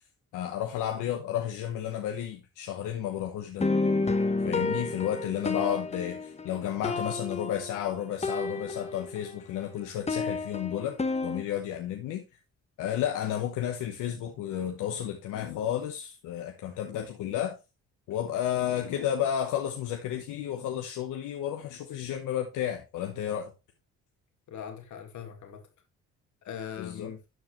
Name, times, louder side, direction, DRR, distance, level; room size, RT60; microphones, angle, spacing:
voice 1, 0.3-3.7 4.4-11.0 11.2-12.2 12.8-17.6 18.1-23.5 26.8-27.1, left 10 dB, 90° left, 1.0 m, -32 dB
sound 1, 3.6-9.4 9.6-11.4, left 3 dB, 20° left, 1.1 m, -30 dB
voice 2, 24.5-25.6 26.4-27.2, left 8 dB, 70° left, 2.0 m, -41 dB
12.0 x 4.7 x 3.1 m
cardioid pair, 90°, 30 cm